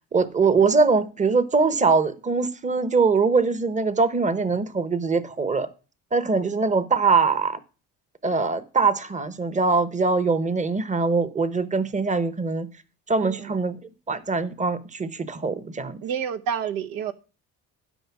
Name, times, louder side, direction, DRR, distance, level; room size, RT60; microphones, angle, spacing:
voice 1, 0.1-5.7 6.1-7.6 8.2-12.7 13.1-13.8 14.1-16.0, right 4 dB, 20° right, 15 dB, 1.0 m, -22 dB
voice 2, 13.2-13.5 16.0-17.1, right 8 dB, 80° right, 10 dB, 1.1 m, -29 dB
12.0 x 5.3 x 5.9 m, 0.34 s
cardioid pair, 95°, 34 cm